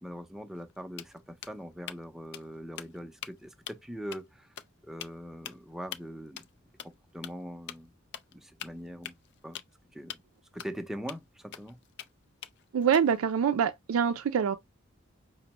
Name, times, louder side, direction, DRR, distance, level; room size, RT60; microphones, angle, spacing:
voice 1, 0.0-4.5 4.8-6.5 7.1-7.9 8.3-9.2 9.4-9.6 9.9-10.2 10.5-11.8, equal, ahead, 0.5 m, -42 dB
sound 1, 0.6-0.7 1.0-2.0 2.3-2.5 2.8-3.3 3.7-3.9 4.1-4.2 4.6-4.7 5.0-5.1 5.5-5.6 5.9-6.0 6.4-6.5 6.8-6.9 7.2-7.3 7.7-7.8 8.1-8.3 8.6-9.7 10.1-10.2 10.6-10.7 11.1-11.2 11.5-12.1 12.4-13.2, left 10 dB, 55° left, 0.4 m, -42 dB
voice 2, 12.7-14.6, right 7 dB, 85° right, 0.4 m, -25 dB
5.2 x 2.1 x 2.9 m
head